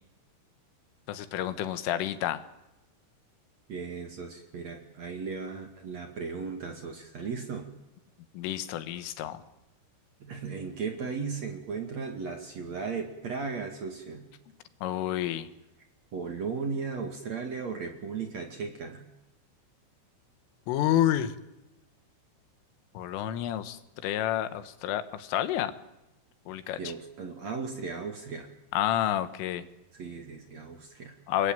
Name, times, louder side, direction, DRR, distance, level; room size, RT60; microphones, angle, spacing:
voice 1, 1.1-2.4 8.3-9.4 14.8-15.5 20.7-21.3 23.0-25.7 26.5-26.8 28.7-29.7 31.3-31.5, left 12 dB, 90° left, 11 dB, 4.0 m, -29 dB
voice 2, 3.7-7.7 10.2-14.2 16.1-19.1 26.8-28.5 29.9-31.1, right 5 dB, 45° right, 5 dB, 2.6 m, -36 dB
29.0 x 21.0 x 9.2 m, 0.96 s
omnidirectional pair, 5.6 m